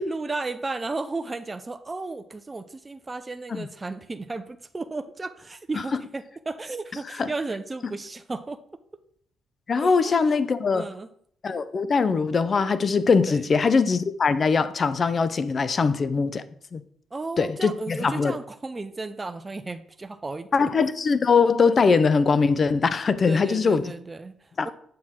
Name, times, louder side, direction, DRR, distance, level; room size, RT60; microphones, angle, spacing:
voice 1, 0.0-8.6 9.8-10.4 10.7-11.1 13.2-13.4 17.1-20.5 23.3-24.7, right 3 dB, 25° right, 0.6 m, -34 dB
voice 2, 9.7-10.8 11.4-16.4 16.7-16.8 17.4-18.3 20.5-23.9 24.6-24.7, left 5 dB, 45° left, 0.5 m, -22 dB
7.5 x 4.4 x 3.7 m
cardioid pair, 80°, 0 cm